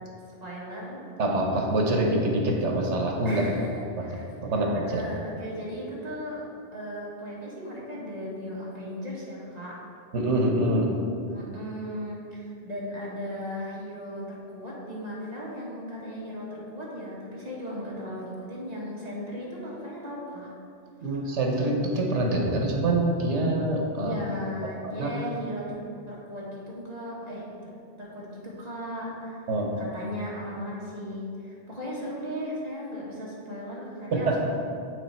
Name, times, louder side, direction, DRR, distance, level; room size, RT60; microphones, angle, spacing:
voice 1, 0.4-1.2 3.2-3.7 4.0-4.3 4.5-6.4 6.7-9.8 11.2-20.5 24.0-25.7 26.1-27.7 28.0-29.5 29.8-34.5, equal, 35° right, -6 dB, 1.4 m, -37 dB
voice 2, 1.2-3.4 4.0-4.1 4.4-5.0 10.1-10.9 21.0-24.1 25.0-25.1 29.5-29.7 34.1-34.5, right 1 dB, 85° right, 0 dB, 1.2 m, -25 dB
6.6 x 4.6 x 4.3 m, 2.5 s
omnidirectional pair, 1.2 m